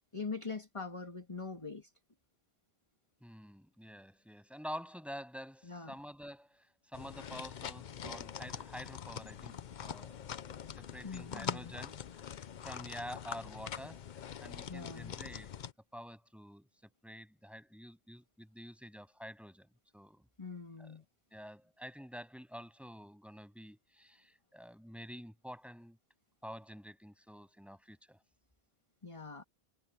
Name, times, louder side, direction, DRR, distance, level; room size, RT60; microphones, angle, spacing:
voice 1, 0.0-1.9 5.6-5.9 8.0-8.2 11.0-11.7 14.7-15.1 20.4-21.0 29.0-29.4, left 4 dB, 30° left, 1.8 m, -43 dB
voice 2, 3.2-10.3 10.8-14.1 14.4-15.6 15.9-20.2 20.8-21.0 21.3-26.0 26.4-28.2, equal, ahead, 7.8 m, -48 dB
sound 1, 6.9-15.7, left 8 dB, 50° left, 0.7 m, -44 dB
omnidirectional pair, 1.1 m